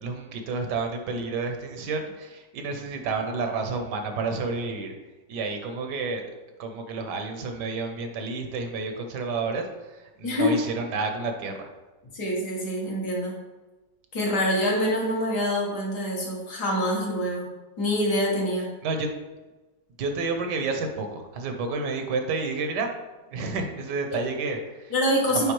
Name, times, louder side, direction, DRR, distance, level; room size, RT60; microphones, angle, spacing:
voice 1, 0.0-4.9 5.3-6.3 6.6-11.7 18.8-19.1 20.0-22.9 23.3-24.9 25.3-25.5, right 4 dB, 75° right, 5 dB, 1.4 m, -30 dB
voice 2, 10.2-10.6 12.1-13.4 14.1-17.5 17.8-18.7 24.9-25.5, equal, 65° left, -3 dB, 2.0 m, -25 dB
8.8 x 3.4 x 3.1 m, 1.1 s
omnidirectional pair, 1.9 m